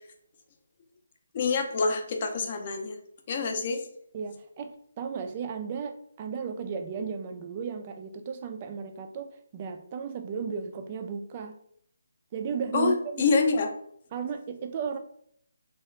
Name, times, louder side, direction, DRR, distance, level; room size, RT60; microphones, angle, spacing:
voice 1, 1.3-3.0 3.3-3.9 12.7-13.7, left 4 dB, 35° left, 3 dB, 0.5 m, -26 dB
voice 2, 4.1-11.6 12.3-13.2 14.1-15.0, right 6 dB, 25° right, 7 dB, 0.3 m, -35 dB
2.8 x 2.4 x 3.1 m, 0.68 s
hypercardioid pair, 165°, 0 cm